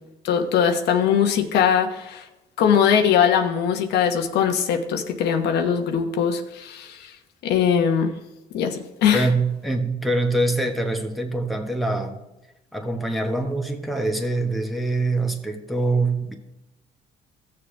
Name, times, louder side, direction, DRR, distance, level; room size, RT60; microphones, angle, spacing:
voice 1, 0.2-2.2 2.6-7.1 7.4-8.1 8.5-9.3, left 8 dB, 80° left, 4 dB, 1.1 m, -21 dB
voice 2, 9.1-12.2 12.7-16.3, right 2 dB, ahead, 2 dB, 1.3 m, -24 dB
16.5 x 6.9 x 3.4 m, 0.96 s
cardioid pair, 110°, 17 cm